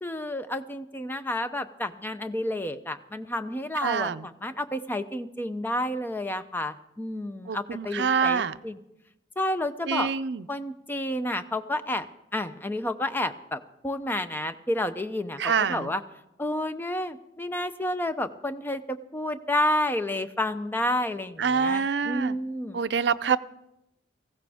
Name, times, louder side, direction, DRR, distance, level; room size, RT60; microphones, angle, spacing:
voice 1, 0.0-8.8 9.4-10.1 10.5-12.1 12.3-16.0 16.4-22.8 23.3-23.4, left 1 dB, 10° left, 10 dB, 0.6 m, -30 dB
voice 2, 3.8-4.3 7.5-8.6 9.9-10.4 15.4-15.9 21.4-22.4 22.7-23.4, right 6 dB, 65° right, 14 dB, 0.5 m, -26 dB
18.5 x 15.5 x 3.5 m, 0.86 s
head